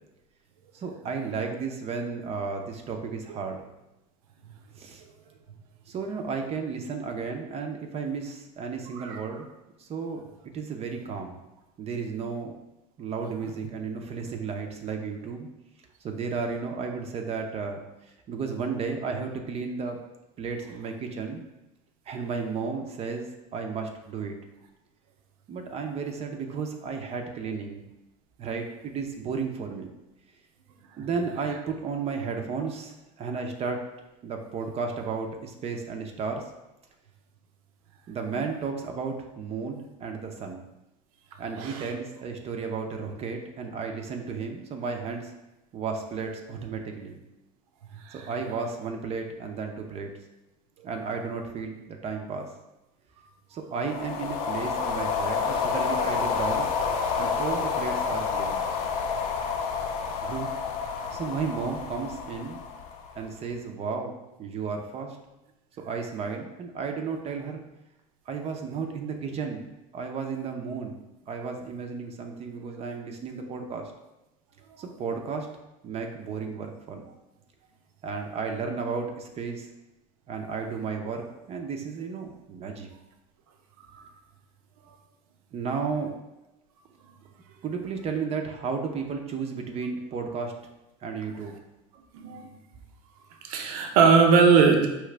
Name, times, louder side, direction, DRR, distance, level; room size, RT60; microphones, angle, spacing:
voice 1, 0.7-3.6 4.8-5.0 5.9-9.5 9.8-10.2 10.5-11.4 11.8-12.5 13.0-15.5 16.0-20.0 20.4-21.4 22.1-24.4 25.5-27.8 28.4-29.9 31.0-33.9 34.2-36.4 38.1-40.7 41.4-45.3 45.7-47.2 48.1-50.1 50.8-52.5 53.5-56.7 57.2-58.6 60.2-60.5 61.1-62.6 63.2-65.2 65.8-67.6 68.3-71.0 71.3-73.9 74.8-75.5 75.8-77.0 78.0-79.7 80.3-82.9 85.5-86.1 87.6-90.5 91.0-91.6, right 5 dB, 35° right, 4 dB, 0.6 m, -33 dB
sound 1, 53.8-63.3, left 5 dB, 80° left, 0.6 m, -29 dB
voice 2, 92.1-92.5 93.4-94.9, right 5 dB, 80° right, 4 dB, 0.7 m, -20 dB
4.8 x 3.1 x 3.3 m, 0.98 s
supercardioid pair, 120°, 18 cm